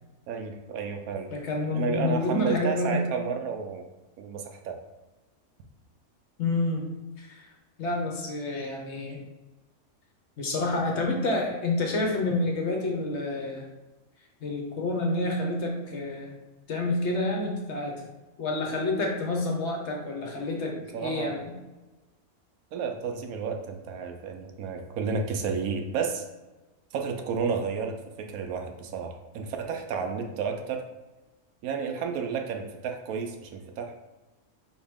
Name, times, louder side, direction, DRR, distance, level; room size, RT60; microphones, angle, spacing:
voice 1, 0.3-1.3 1.7-3.8 4.2-4.8 20.9-21.4 22.7-26.2 26.9-30.8 31.6-33.9, right 5 dB, 80° right, 5 dB, 1.0 m, -31 dB
voice 2, 1.3-3.1 6.4-6.9 7.2-7.4 7.8-9.2 10.4-13.6 14.4-16.3 16.7-18.1 18.4-21.6, left 2 dB, 60° left, 0 dB, 0.9 m, -28 dB
4.2 x 2.9 x 3.4 m, 1.1 s
omnidirectional pair, 1.5 m